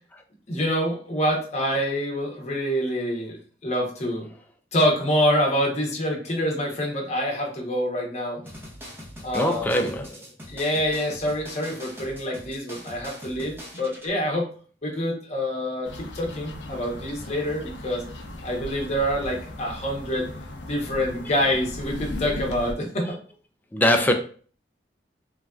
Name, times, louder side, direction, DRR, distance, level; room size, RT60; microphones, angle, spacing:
voice 1, 0.5-4.3 4.7-8.4 9.2-9.9 10.5-14.5 14.8-18.0 18.4-20.3 20.6-23.2, equal, 40° left, 0.8 m, -26 dB
sound 1, 8.5-14.1, equal, 15° right, 0.7 m, -42 dB
voice 2, 9.3-10.2 23.7-24.1, left 1 dB, 10° left, 0.3 m, -22 dB
sound 2, 15.8-22.7, left 1 dB, 70° left, 0.5 m, -37 dB
3.2 x 2.5 x 2.3 m
head